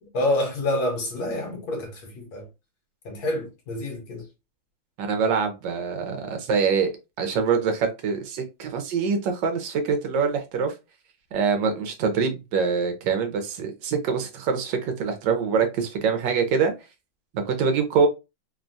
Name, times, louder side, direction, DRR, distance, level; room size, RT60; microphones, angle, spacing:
voice 1, 0.0-2.5 3.0-4.3, left 1 dB, 65° left, 1.1 m, -28 dB
voice 2, 5.0-6.9 7.2-10.7 11.3-16.7 17.3-18.1, right 5 dB, 75° right, 1.3 m, -24 dB
3.2 x 2.2 x 2.5 m
omnidirectional pair, 2.1 m